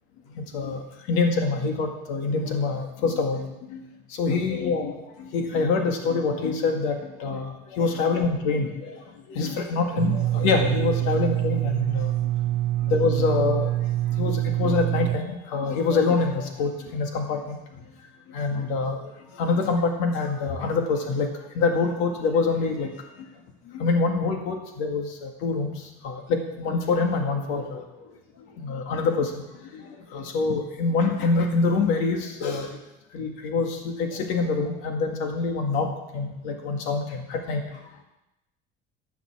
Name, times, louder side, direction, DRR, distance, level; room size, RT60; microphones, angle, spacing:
voice 1, 0.4-0.8 1.1-3.4 3.7-3.8 4.2-4.9 5.3-9.0 9.3-12.1 12.9-13.7 14.2-17.6 18.3-19.0 19.4-21.3 21.6-22.9 23.8-25.7 26.0-27.8 28.6-29.3 29.7-29.8 30.1-32.7 33.1-37.6, left 4 dB, 85° left, 3 dB, 2.0 m, -25 dB
sound 1, 10.0-15.2, right 14 dB, 75° right, 0.5 m, -25 dB
15.0 x 5.8 x 7.2 m, 0.92 s
cardioid pair, 165°, 20 cm